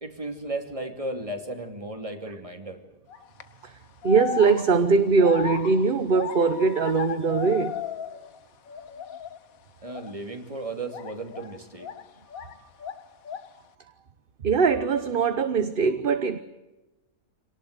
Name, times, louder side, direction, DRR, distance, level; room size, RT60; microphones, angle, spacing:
voice 1, 0.0-2.8 9.8-11.9, right 2 dB, 25° right, 2.8 m, -35 dB
sound 1, 3.1-3.4 4.0-8.4 8.7-9.4 9.9-10.1 10.9-12.5 12.8-13.6, left 8 dB, 80° left, 1.5 m, -35 dB
voice 2, 4.0-7.8 14.4-16.4, right 5 dB, 45° right, 1.1 m, -21 dB
26.5 x 18.5 x 8.1 m
omnidirectional pair, 1.5 m